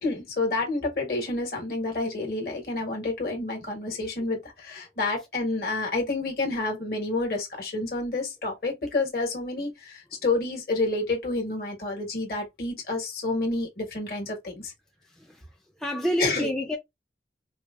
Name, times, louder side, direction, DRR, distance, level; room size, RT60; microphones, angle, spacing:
voice 1, 0.0-14.7 16.2-16.5, left 2 dB, 55° left, 1.3 m, -29 dB
voice 2, 15.1-15.4 15.8-16.8, equal, 5° left, 0.4 m, -28 dB
4.5 x 2.1 x 2.3 m
head